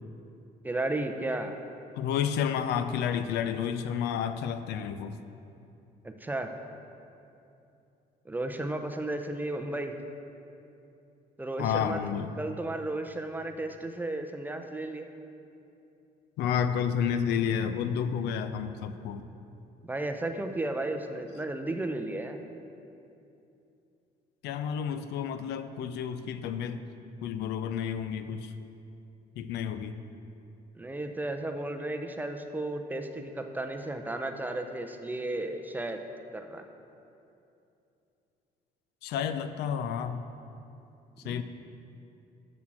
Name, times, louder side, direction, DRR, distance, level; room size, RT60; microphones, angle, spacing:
voice 1, 0.6-1.5 6.0-6.5 8.3-9.9 11.4-12.0 12.4-15.1 19.9-22.4 30.8-36.0 36.3-36.6 41.2-41.4, right 2 dB, 10° right, 5 dB, 0.5 m, -34 dB
voice 2, 2.0-5.2 11.6-12.3 16.4-19.3 24.4-26.8 27.2-28.5 29.4-30.0 39.0-40.2 41.2-41.4, left 8 dB, 80° left, 10 dB, 0.5 m, -30 dB
7.3 x 6.3 x 6.0 m, 2.7 s
cardioid pair, 110°, 17 cm